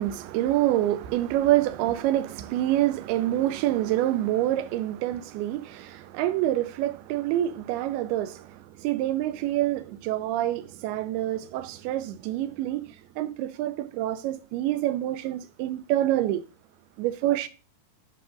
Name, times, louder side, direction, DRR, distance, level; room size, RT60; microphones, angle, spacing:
voice 1, 0.0-12.9 13.2-16.4 17.0-17.5, right 14 dB, 90° right, 2.5 m, -27 dB
10.0 x 5.7 x 2.5 m
omnidirectional pair, 4.5 m